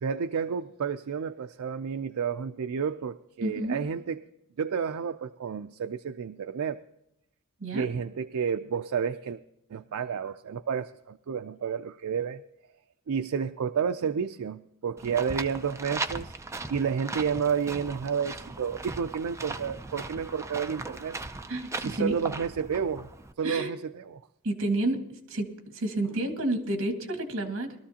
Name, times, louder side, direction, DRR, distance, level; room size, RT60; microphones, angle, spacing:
voice 1, 0.0-4.2 4.6-6.8 7.7-9.4 9.7-12.4 13.1-16.3 16.7-21.2 21.8-23.1 23.4-24.2 26.2-26.3, right 6 dB, 85° right, 8 dB, 0.4 m, -31 dB
voice 2, 3.4-3.8 7.6-7.9 21.5-22.1 23.4-23.7 24.4-25.0 25.3-27.7, right 1 dB, 60° right, 5 dB, 1.8 m, -30 dB
sound 1, 15.0-23.3, right 3 dB, 15° right, 0.5 m, -38 dB
21.0 x 13.0 x 2.8 m, 0.82 s
head